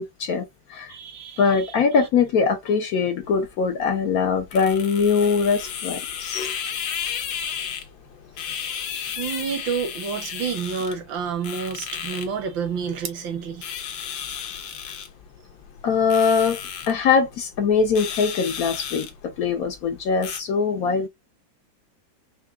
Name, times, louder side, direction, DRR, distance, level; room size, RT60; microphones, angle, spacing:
voice 1, 0.0-0.9 1.4-6.5 15.8-16.6 16.9-21.1, left 5 dB, 65° left, 0.9 m, -22 dB
voice 2, 0.9-1.7 9.2-13.7, right 6 dB, 75° right, 1.7 m, -29 dB
sound 1, 3.2-20.4, left 8 dB, 80° left, 1.6 m, -34 dB
4.7 x 2.3 x 3.5 m
omnidirectional pair, 2.1 m